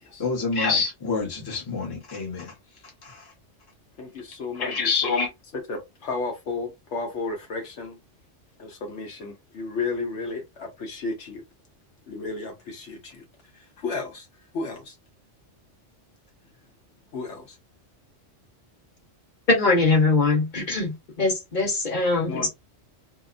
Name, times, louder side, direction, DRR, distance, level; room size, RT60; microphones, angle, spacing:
voice 1, 0.2-2.5 4.6-5.3, left 4 dB, 20° left, 0.9 m, -26 dB
voice 2, 4.0-5.2 5.5-8.0 8.6-11.4 12.1-13.2 13.5-14.3 14.5-14.9 17.1-17.6 22.3-22.5, left 3 dB, 70° left, 1.0 m, -33 dB
voice 3, 19.5-22.5, left 3 dB, 40° left, 1.2 m, -22 dB
2.8 x 2.0 x 2.5 m
omnidirectional pair, 1.3 m